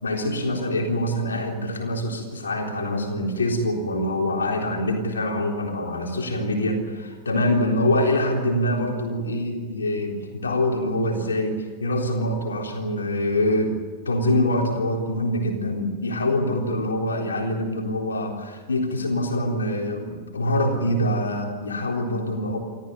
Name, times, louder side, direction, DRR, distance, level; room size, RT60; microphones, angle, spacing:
voice 1, 0.0-13.7 14.1-22.6, left 1 dB, 70° left, 2 dB, 3.8 m, -25 dB
28.0 x 14.0 x 9.6 m, 1.5 s
figure-of-eight pair, 90°, 0 cm